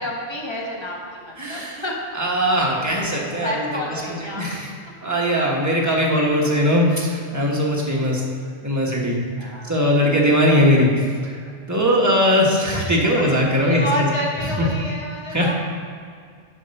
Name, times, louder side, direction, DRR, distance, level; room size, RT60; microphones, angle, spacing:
voice 1, 0.0-2.0 3.4-4.6 9.4-10.0 10.4-10.6 13.2-13.3 13.6-15.5, equal, 25° left, -2 dB, 1.3 m, -29 dB
voice 2, 1.4-1.8 2.1-3.7 4.4-4.7 5.0-8.2 8.6-10.9 11.2-11.4 11.7-14.0 14.6-14.9 15.3-15.5, equal, 15° right, -3 dB, 1.3 m, -20 dB
7.5 x 5.6 x 5.5 m, 2.1 s
omnidirectional pair, 1.1 m